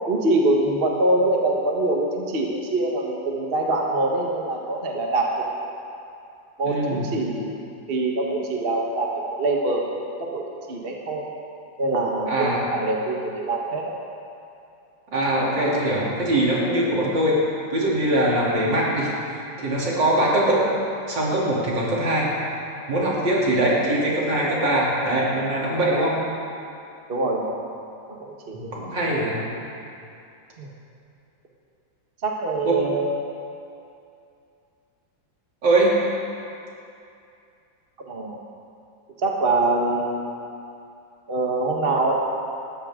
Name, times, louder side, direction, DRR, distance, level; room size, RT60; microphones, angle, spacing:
voice 1, 0.1-5.4 6.6-7.5 7.9-9.9 10.2-10.4 10.7-11.3 11.8-13.9 27.1-27.6 28.1-28.7 30.6-30.7 32.2-33.1 38.0-38.4 39.2-40.3 41.3-42.1, right 2 dB, 30° right, -1 dB, 1.3 m, -24 dB
voice 2, 6.6-7.0 12.3-12.7 15.1-17.4 17.7-20.7 21.1-22.3 22.9-26.1 28.5-29.4 32.7-32.8 35.6-36.0, right 1 dB, 65° right, -6 dB, 3.6 m, -22 dB
20.5 x 13.5 x 3.7 m, 2.6 s
omnidirectional pair, 2.2 m